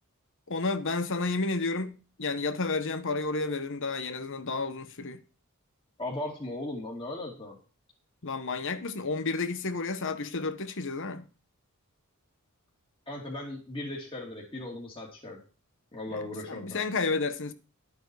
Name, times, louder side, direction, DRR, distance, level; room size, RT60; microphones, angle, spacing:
voice 1, 0.5-5.2 8.2-11.3 16.1-16.2 16.5-17.5, left 3 dB, 60° left, 1.2 m, -31 dB
voice 2, 6.0-7.6 13.1-15.4 15.9-16.8, left 1 dB, 25° left, 2.9 m, -37 dB
12.0 x 8.8 x 4.8 m
head